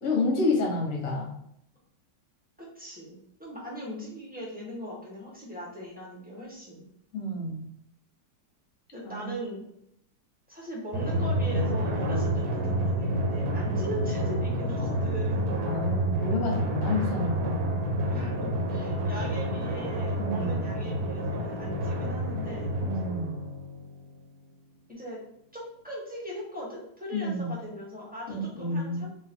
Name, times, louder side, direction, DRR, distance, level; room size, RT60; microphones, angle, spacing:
voice 1, 0.0-1.3 7.1-7.6 9.0-9.3 15.6-17.5 20.2-20.6 22.8-23.3 27.1-27.5 28.3-29.1, left 2 dB, 55° left, -1 dB, 1.6 m, -29 dB
voice 2, 2.6-6.9 8.9-9.7 10.5-15.4 18.1-22.7 24.9-25.2 25.5-29.1, equal, 5° right, -5 dB, 1.0 m, -39 dB
Drum, 10.9-24.0, equal, 70° right, 1.1 m, -29 dB
3.9 x 2.9 x 4.3 m, 0.75 s
omnidirectional pair, 1.8 m